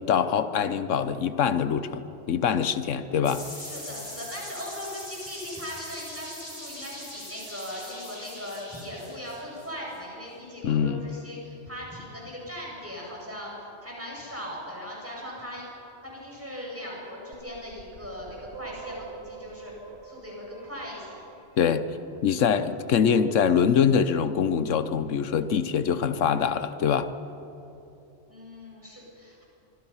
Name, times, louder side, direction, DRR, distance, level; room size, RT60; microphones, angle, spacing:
voice 1, 0.1-2.0 2.3-3.4 10.6-11.1 21.6-21.8 22.2-27.1, left 7 dB, 90° left, 12 dB, 1.2 m, -24 dB
sound 1, 3.2-10.0, left 1 dB, 55° left, 6.3 m, -41 dB
voice 2, 3.6-13.5 13.8-15.7 16.0-19.7 20.0-21.3 28.3-29.4, equal, 10° right, -3 dB, 7.1 m, -39 dB
sound 2, 17.3-22.2, right 5 dB, 60° right, 2.2 m, -45 dB
25.0 x 24.5 x 5.7 m, 2.8 s
omnidirectional pair, 1.2 m